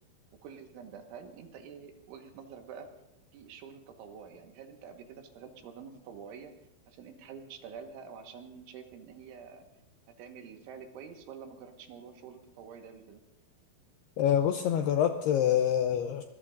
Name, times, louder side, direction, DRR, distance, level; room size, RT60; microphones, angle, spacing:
voice 1, 0.4-2.9 3.3-6.5 6.9-9.6 10.2-13.2, right 6 dB, 85° right, 4 dB, 4.0 m, -47 dB
voice 2, 14.2-16.2, left 10 dB, 85° left, 7 dB, 2.3 m, -26 dB
23.5 x 21.0 x 2.6 m, 0.88 s
omnidirectional pair, 5.4 m